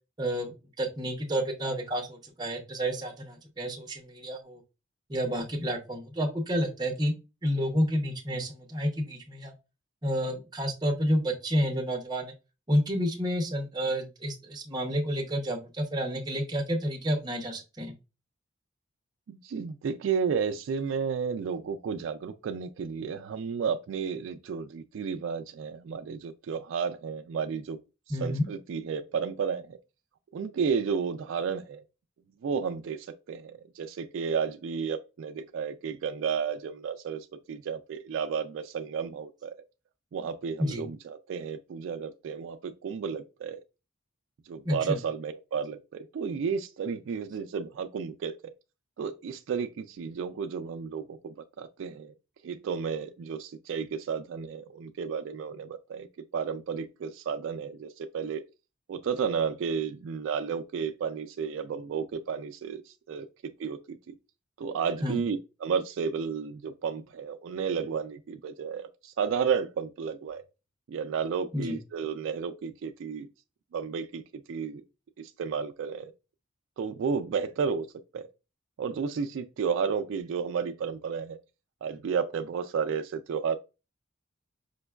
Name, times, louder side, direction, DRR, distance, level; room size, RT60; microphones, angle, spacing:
voice 1, 0.2-4.6 5.1-7.1 7.4-9.5 10.0-12.3 12.7-17.9 28.1-28.5 40.6-40.8 44.6-45.0 65.0-65.2 71.5-71.8, equal, 20° right, 0.7 m, -30 dB
voice 2, 19.3-27.8 28.1-29.8 30.3-31.8 32.4-39.5 40.1-43.6 44.5-48.3 49.0-52.1 52.4-56.1 56.3-58.4 58.9-64.2 64.6-70.4 70.9-73.3 73.7-74.8 75.2-76.1 76.8-77.9 78.1-78.3 78.8-81.4 81.8-83.6, right 6 dB, 70° right, 0.3 m, -32 dB
5.1 x 2.2 x 2.2 m
head